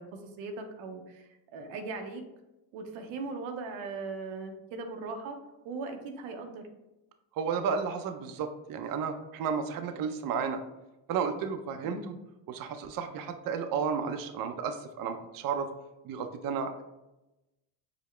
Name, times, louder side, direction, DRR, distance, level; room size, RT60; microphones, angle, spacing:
voice 1, 0.0-2.2 2.7-5.4 5.6-6.6 11.8-12.1, right 3 dB, 90° right, 5 dB, 0.7 m, -39 dB
voice 2, 7.4-10.6 11.1-12.0 12.5-15.7 16.0-16.8, right 6 dB, 50° right, 7 dB, 0.5 m, -32 dB
4.8 x 2.1 x 3.1 m, 0.97 s
cardioid pair, 90°, 45 cm